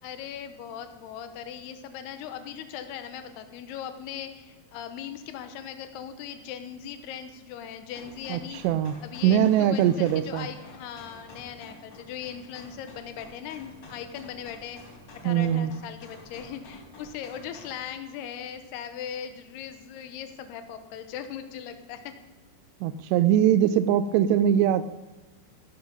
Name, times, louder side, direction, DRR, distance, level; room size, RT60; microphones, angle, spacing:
voice 1, 0.0-8.6 9.0-22.1, left 9 dB, 75° left, 9 dB, 3.0 m, -39 dB
sound 1, 7.9-17.8, left 2 dB, 50° left, 4.8 m, -49 dB
voice 2, 8.3-8.9 9.2-10.5 15.2-15.7 22.8-24.8, right 10 dB, 85° right, 14 dB, 2.7 m, -22 dB
16.0 x 12.0 x 5.3 m, 1.2 s
omnidirectional pair, 4.9 m